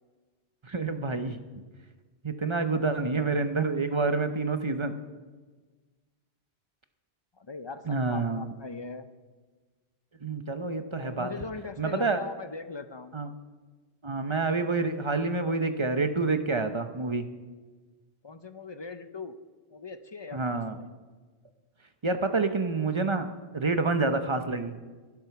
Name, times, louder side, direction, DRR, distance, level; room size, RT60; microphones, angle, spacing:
voice 1, 0.6-1.4 2.2-5.0 7.9-8.5 10.2-11.3 11.8-12.3 13.1-13.3 14.0-17.2 20.3-20.8 22.0-24.8, right 3 dB, 30° right, 8 dB, 0.7 m, -28 dB
voice 2, 7.4-9.1 10.9-13.2 18.2-19.4 19.7-20.9, left 4 dB, 35° left, 10 dB, 0.5 m, -40 dB
12.0 x 11.0 x 5.8 m, 1.3 s
omnidirectional pair, 1.1 m